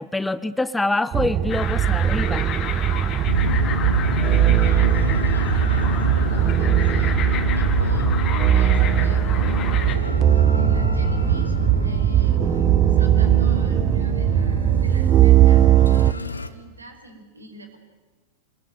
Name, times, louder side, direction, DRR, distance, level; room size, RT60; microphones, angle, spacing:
voice 1, 0.0-2.5, left 2 dB, 5° left, 16 dB, 0.8 m, -25 dB
sound 1, 1.1-16.1, right 12 dB, 30° right, 0.7 m, -19 dB
sound 2, 1.5-10.0, left 8 dB, 30° left, 2.7 m, -32 dB
sound 3, 3.3-16.5, left 3 dB, 80° left, 1.4 m, -28 dB
voice 2, 4.6-9.6 10.5-12.4 12.7-17.8, right 2 dB, 80° right, 6 dB, 4.9 m, -44 dB
27.5 x 20.5 x 9.2 m, 1.3 s
figure-of-eight pair, 90°, 0 cm